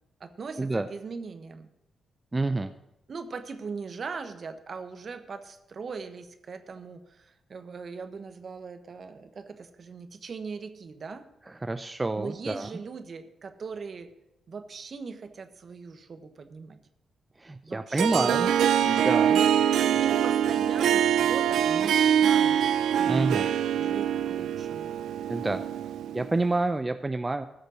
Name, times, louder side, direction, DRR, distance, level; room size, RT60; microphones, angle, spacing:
voice 1, 0.2-1.7 3.1-11.3 12.2-14.1 14.5-16.8 17.6-22.6 23.0-24.9, right 5 dB, 55° right, 9 dB, 1.2 m, -40 dB
voice 2, 2.3-2.7 11.6-12.7 17.4-18.5 18.8-19.4 23.1-23.5 25.3-25.6 26.1-27.4, right 2 dB, 25° right, 9 dB, 0.6 m, -28 dB
Harp, 18.0-26.4, right 9 dB, 75° right, 0.5 m, -24 dB
14.5 x 6.5 x 6.3 m, 0.87 s
hypercardioid pair, 40°, 0 cm